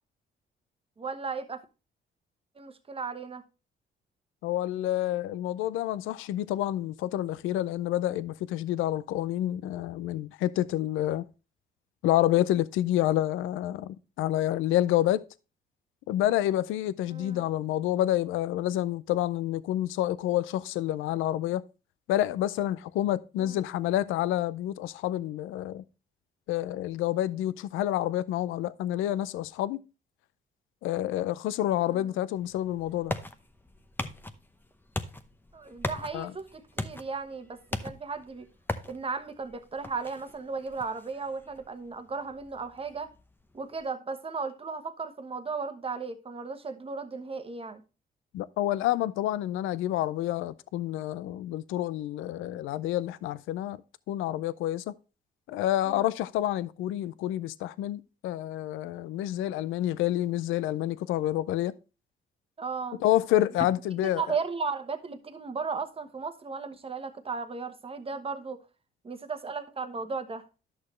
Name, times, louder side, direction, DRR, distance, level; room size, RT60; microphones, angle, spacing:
voice 1, 1.0-1.6 2.6-3.4 17.1-17.4 23.4-23.6 31.9-32.1 35.5-38.5 38.8-43.1 43.5-47.8 55.9-56.1 62.6-63.0 64.2-68.6 69.0-70.4, right 4 dB, 30° right, 1.1 m, -35 dB
voice 2, 4.4-11.3 12.0-15.2 16.1-21.6 22.1-25.8 26.5-29.8 30.8-33.1 36.1-36.3 48.3-53.8 54.1-54.9 55.5-61.7 63.0-64.2, left 13 dB, 90° left, 0.4 m, -28 dB
sound 1, 32.4-43.8, left 2 dB, 10° left, 0.8 m, -40 dB
11.0 x 6.5 x 3.1 m
cardioid pair, 90°, 20 cm